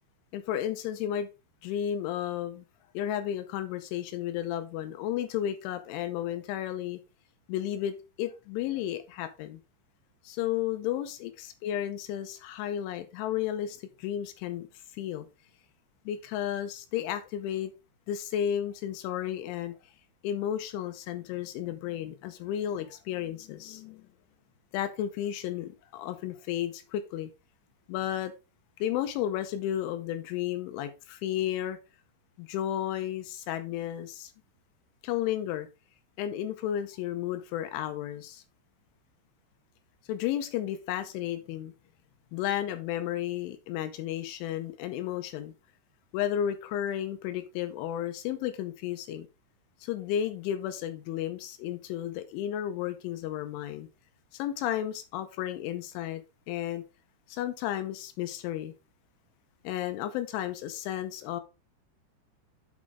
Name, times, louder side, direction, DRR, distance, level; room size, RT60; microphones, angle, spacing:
voice 1, 0.3-1.3 1.6-2.7 2.9-7.0 7.5-9.6 10.2-14.7 14.9-15.3 16.1-17.7 18.1-19.8 20.2-24.1 24.7-27.3 27.9-28.3 28.8-31.8 32.4-34.3 35.0-35.7 36.2-38.4 40.1-41.7 42.3-45.5 46.1-49.3 49.8-53.9 54.3-56.2 56.5-56.8 57.3-58.7 59.6-61.4, left 11 dB, 80° left, 9 dB, 3.0 m, -33 dB
8.5 x 5.0 x 3.5 m, 0.29 s
omnidirectional pair, 5.9 m